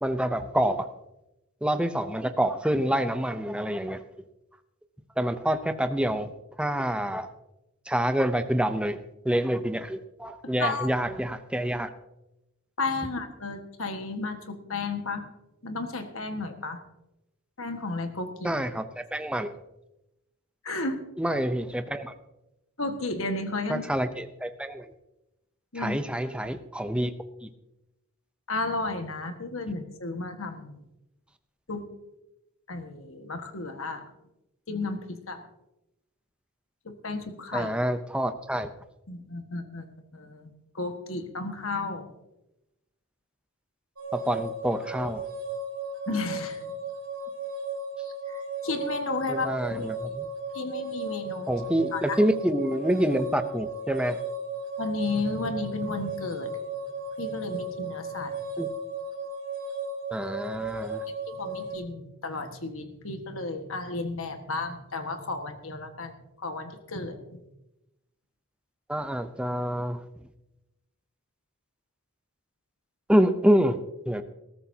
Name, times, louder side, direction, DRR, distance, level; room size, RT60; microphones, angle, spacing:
voice 1, 0.0-0.9 1.6-4.0 5.2-6.3 6.6-7.3 7.9-9.0 9.2-11.9 18.4-19.5 21.2-22.1 23.7-24.9 25.7-27.1 27.4-27.5 37.5-38.7 44.1-45.3 49.3-50.3 51.5-54.2 58.6-58.7 60.1-61.0 68.9-70.0 73.1-73.8 74.1-74.2, right 1 dB, 5° right, 9 dB, 0.6 m, -27 dB
voice 2, 10.4-10.9 12.8-15.3 15.6-16.8 17.6-18.5 20.6-21.0 22.8-23.9 25.7-25.9 28.5-30.8 31.7-31.8 32.7-34.0 34.7-35.4 36.8-37.7 39.1-39.8 40.1-40.5 40.7-42.1 46.1-46.7 48.0-49.9 50.5-51.5 51.9-52.2 54.8-56.6 57.2-58.4 61.1-66.1 66.4-67.4, left 3 dB, 70° left, 6 dB, 1.6 m, -33 dB
sound 1, 44.0-61.8, right 2 dB, 70° right, 3.4 m, -35 dB
20.5 x 13.5 x 2.8 m, 0.92 s
head